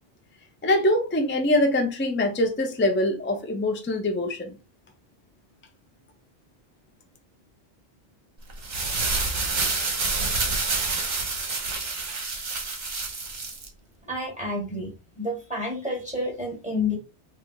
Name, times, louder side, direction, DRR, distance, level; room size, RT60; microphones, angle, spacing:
voice 1, 0.6-4.6, left 1 dB, 15° left, 0.4 m, -23 dB
sound 1, 8.5-13.7, right 3 dB, 45° right, 0.9 m, -28 dB
voice 2, 14.1-17.0, left 2 dB, 5° right, 1.2 m, -30 dB
3.3 x 2.6 x 3.8 m
omnidirectional pair, 1.1 m